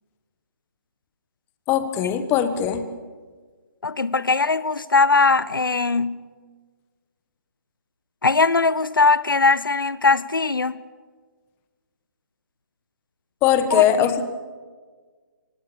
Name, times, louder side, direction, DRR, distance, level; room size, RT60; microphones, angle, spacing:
voice 1, 1.7-2.8 13.4-14.2, left 9 dB, 20° left, 1.4 m, -20 dB
voice 2, 3.8-6.2 8.2-10.8 13.7-14.1, left 4 dB, 80° left, 0.8 m, -20 dB
24.5 x 18.5 x 7.0 m
figure-of-eight pair, 140°, 11 cm